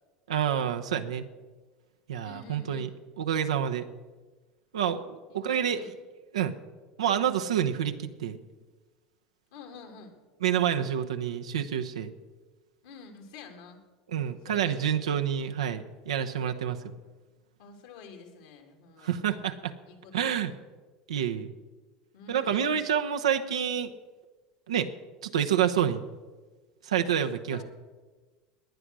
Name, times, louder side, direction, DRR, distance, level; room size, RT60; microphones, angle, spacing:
voice 1, 0.3-1.3 2.1-2.9 3.2-3.9 4.7-5.8 6.3-6.5 7.0-8.4 10.4-12.1 14.1-16.8 19.0-19.7 20.1-20.5 21.1-21.5 22.3-23.9 24.7-24.9 25.2-26.0 26.8-27.6, right 9 dB, 90° right, 6 dB, 1.0 m, -28 dB
voice 2, 2.2-2.9 5.5-5.9 9.5-10.1 12.8-13.8 14.5-15.0 17.6-19.2 19.9-20.6 22.1-22.9 27.5-27.6, left 4 dB, 75° left, 4 dB, 3.2 m, -48 dB
18.5 x 9.9 x 6.3 m, 1.3 s
hypercardioid pair, 90°, 3 cm